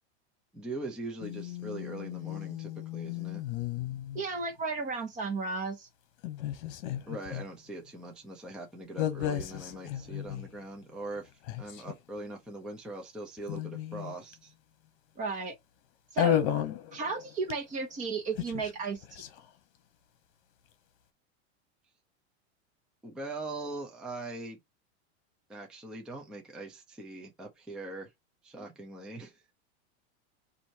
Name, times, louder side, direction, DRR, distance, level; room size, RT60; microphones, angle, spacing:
voice 1, 0.5-3.4 7.1-11.3 11.6-14.5 23.0-24.6 25.5-28.1 28.4-29.4, right 2 dB, ahead, 0.4 m, -41 dB
sound 1, 1.2-4.4 6.2-7.5 9.0-10.6 11.2-11.3 11.4-11.9 13.4-14.3 16.2-17.8 18.1-19.5, left 11 dB, 55° left, 1.1 m, -34 dB
voice 2, 4.1-5.9 15.2-15.5 16.1-16.4 16.9-19.2, right 4 dB, 20° right, 1.1 m, -34 dB
4.2 x 2.7 x 4.5 m
supercardioid pair, 160°, 35 cm